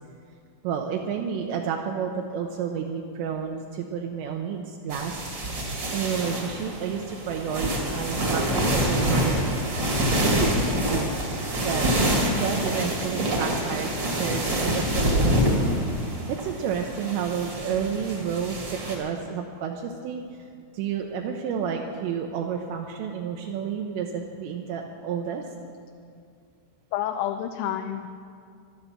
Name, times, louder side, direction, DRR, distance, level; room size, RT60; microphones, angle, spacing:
voice 1, 0.6-5.2 5.9-9.6 10.2-11.1 11.6-11.9 12.3-15.7 16.3-20.2 20.7-25.4, right 7 dB, 85° right, 2 dB, 2.7 m, -30 dB
sound 1, 4.9-19.0, equal, 45° right, 1.4 m, -26 dB
voice 2, 26.9-28.1, left 11 dB, 85° left, 6 dB, 2.8 m, -29 dB
14.0 x 12.0 x 5.9 m, 2.3 s
omnidirectional pair, 5.6 m